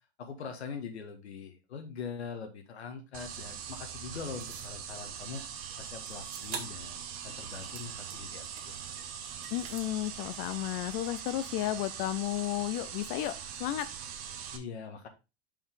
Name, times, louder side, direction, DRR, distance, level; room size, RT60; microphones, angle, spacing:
voice 1, 0.2-5.5 5.8-8.8 14.5-15.1, left 6 dB, 90° left, 1.7 m, -42 dB
sound 1, 3.1-14.6, right 8 dB, 40° right, 1.3 m, -42 dB
sound 2, 4.4-4.8 6.0-6.9 7.3-8.8 9.3-9.9, right 6 dB, 75° right, 2.0 m, -45 dB
voice 2, 9.5-13.9, left 15 dB, 45° left, 0.5 m, -33 dB
5.7 x 5.5 x 3.7 m
hypercardioid pair, 120°, 32 cm